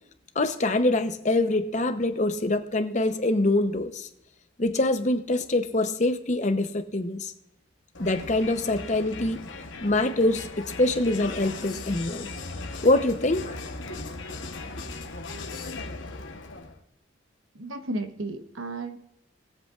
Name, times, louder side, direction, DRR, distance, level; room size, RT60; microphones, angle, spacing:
voice 1, 0.4-4.1 4.6-7.3 8.0-9.4 9.8-12.3 12.8-13.6, left 2 dB, 35° left, 8 dB, 0.8 m, -24 dB
Crowd, 7.9-16.8, left 3 dB, 65° left, 1.1 m, -38 dB
voice 2, 17.5-19.0, right 2 dB, 80° right, 7 dB, 1.1 m, -33 dB
20.0 x 7.9 x 2.5 m, 0.82 s
head